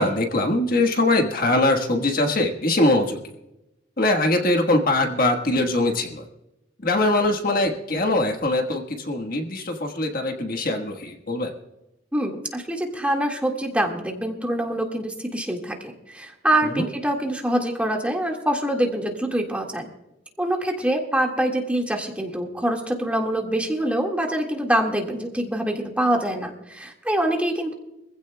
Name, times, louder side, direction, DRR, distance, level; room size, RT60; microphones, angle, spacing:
voice 1, 0.0-3.2 4.0-6.3 6.8-11.5 16.6-16.8, left 2 dB, 50° left, 4 dB, 1.4 m, -22 dB
voice 2, 12.1-19.9 20.4-27.7, right 1 dB, 5° right, 1 dB, 1.8 m, -25 dB
24.0 x 15.5 x 2.2 m, 0.91 s
head